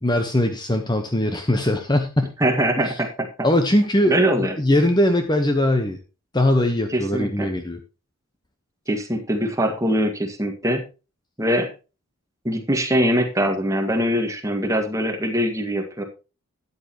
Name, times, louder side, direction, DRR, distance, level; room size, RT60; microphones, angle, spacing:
voice 1, 0.0-2.3 3.4-6.0 6.3-7.8, left 1 dB, 20° left, 6 dB, 1.0 m, -20 dB
voice 2, 2.4-3.3 4.1-4.5 6.9-7.5 8.9-10.8 11.4-11.7 12.4-16.0, equal, 15° right, 4 dB, 1.8 m, -22 dB
13.0 x 9.7 x 3.0 m, 0.31 s
head